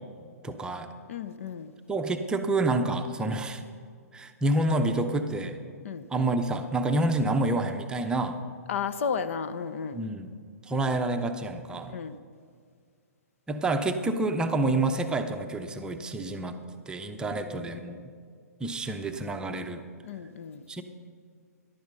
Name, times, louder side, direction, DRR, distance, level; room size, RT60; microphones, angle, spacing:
voice 1, 0.4-0.9 1.9-3.6 4.1-5.6 6.1-8.4 9.9-10.3 10.7-11.9 13.5-16.6 16.9-18.0 18.6-19.8 20.7-20.8, right 2 dB, 10° right, 6 dB, 0.7 m, -28 dB
voice 2, 1.1-1.7 5.8-6.1 8.7-10.0 11.9-12.2 17.3-18.0 20.0-20.6, left 6 dB, 55° left, 12 dB, 0.6 m, -34 dB
14.0 x 11.0 x 5.4 m, 2.1 s
figure-of-eight pair, 115°, 9 cm